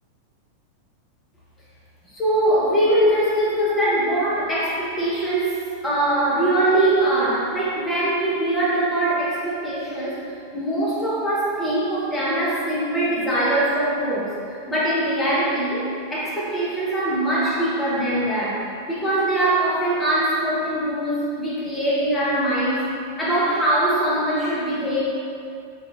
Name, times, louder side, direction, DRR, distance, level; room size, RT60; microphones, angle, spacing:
voice 1, 2.1-10.2 10.5-14.3 14.7-22.9 23.2-25.0, right 1 dB, 15° left, -8 dB, 1.1 m, -22 dB
4.3 x 3.2 x 2.5 m, 2.5 s
figure-of-eight pair, 90°, 0 cm